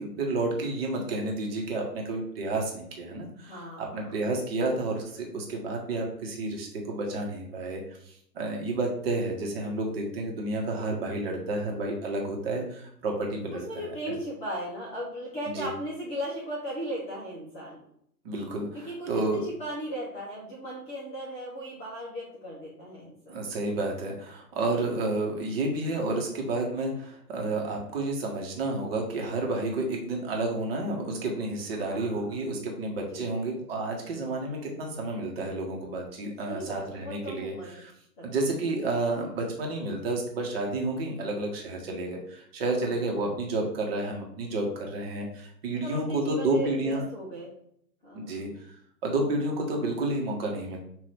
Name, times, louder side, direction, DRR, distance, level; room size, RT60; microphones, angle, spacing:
voice 1, 0.0-13.6 15.6-15.7 18.2-19.4 23.3-37.9 38.2-47.0 48.1-48.8 49.0-50.8, right 2 dB, 35° right, 0 dB, 1.2 m, -30 dB
voice 2, 3.4-4.2 13.5-17.8 18.7-23.4 31.8-32.3 33.1-33.4 36.4-37.8 38.2-38.3 42.8-42.9 45.8-47.6 48.0-48.4, right 1 dB, 15° left, -6 dB, 0.7 m, -37 dB
5.6 x 2.7 x 3.4 m, 0.69 s
figure-of-eight pair, 125°, 49 cm